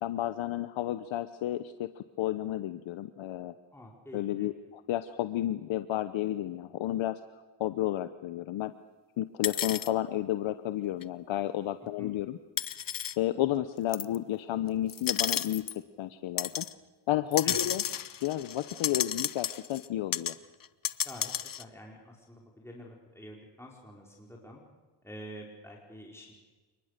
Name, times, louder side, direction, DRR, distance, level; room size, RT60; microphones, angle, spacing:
voice 1, 0.0-3.5 4.1-7.2 7.6-8.7 9.2-12.4 13.2-15.7 16.0-16.6 17.1-17.8 18.2-20.3, left 13 dB, 80° left, 11 dB, 1.0 m, -32 dB
voice 2, 3.7-4.5 12.0-12.1 17.4-17.7 21.0-24.6 25.0-26.3, equal, 5° left, -2 dB, 4.8 m, -48 dB
sound 1, 9.4-9.9 11.0-11.1 12.6-13.2 13.9-14.2 14.9-15.8 16.4-16.7 17.3-19.9 20.1-20.4 20.6-21.6, left 9 dB, 45° left, 1.0 m, -32 dB
29.0 x 20.0 x 6.7 m, 1.3 s
cardioid pair, 75°, 46 cm